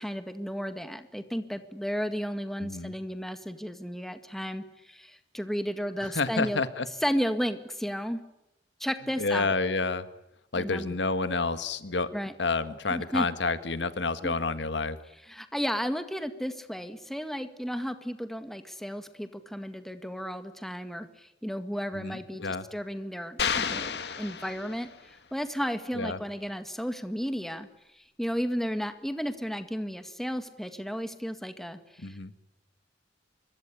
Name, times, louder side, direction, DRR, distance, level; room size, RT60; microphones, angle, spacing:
voice 1, 0.0-6.6 7.0-8.2 8.8-9.5 10.6-10.9 12.1-12.3 12.9-13.3 14.2-14.3 15.3-27.7 28.0-32.4, equal, ahead, 9 dB, 1.9 m, -33 dB
voice 2, 2.6-2.9 6.0-6.9 9.2-10.1 10.5-12.1 12.4-15.0 21.9-22.7 25.9-26.2 32.0-32.3, left 3 dB, 85° left, 12 dB, 1.7 m, -29 dB
sound 1, 23.4-25.1, left 6 dB, 70° left, 1.9 m, -31 dB
25.5 x 23.0 x 9.9 m, 0.84 s
head